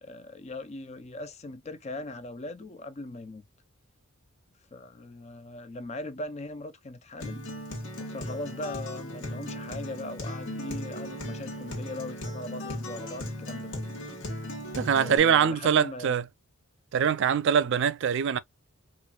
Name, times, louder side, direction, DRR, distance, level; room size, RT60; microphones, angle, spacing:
voice 1, 0.0-3.4 4.7-7.5 8.0-13.9 15.0-16.1, left 2 dB, 30° left, 0.5 m, -39 dB
Acoustic guitar, 7.2-15.2, left 1 dB, 60° left, 1.4 m, -37 dB
voice 2, 14.8-16.2 16.9-18.4, right 7 dB, 55° right, 0.3 m, -23 dB
4.4 x 2.5 x 2.2 m
head